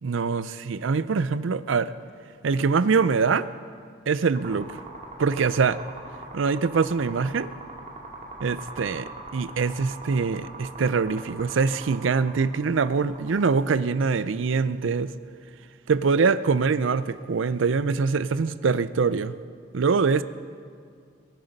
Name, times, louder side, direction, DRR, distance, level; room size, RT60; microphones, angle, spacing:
voice 1, 0.0-1.9 2.4-3.5 4.1-4.7 5.2-5.8 6.3-7.5 8.4-9.0 9.3-15.1 15.9-19.3 19.7-20.2, right 5 dB, 75° right, 15 dB, 0.5 m, -23 dB
sound 1, 4.4-13.4, right 2 dB, 35° right, 2.2 m, -41 dB
22.5 x 9.2 x 5.3 m, 2.1 s
head